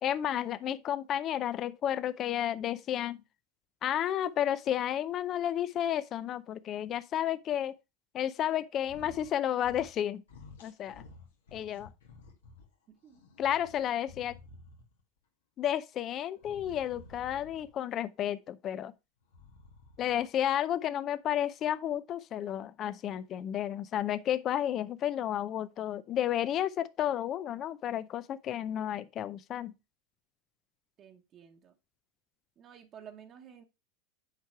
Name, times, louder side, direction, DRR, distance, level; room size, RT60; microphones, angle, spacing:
voice 1, 0.0-3.2 3.8-7.7 8.1-10.2 10.6-11.0 11.5-11.9 13.4-14.4 15.6-18.9 20.0-29.7, left 11 dB, 40° left, 0.5 m, -32 dB
sound 1, 8.8-9.3 9.6-10.0 10.3-12.7 13.1-15.0 16.4-17.8 19.2-20.3, left 3 dB, 90° left, 1.9 m, -53 dB
voice 2, 12.9-13.2 31.0-31.7 32.6-33.6, right 8 dB, 40° right, 1.1 m, -52 dB
7.5 x 4.6 x 4.5 m
hypercardioid pair, 105°, 0 cm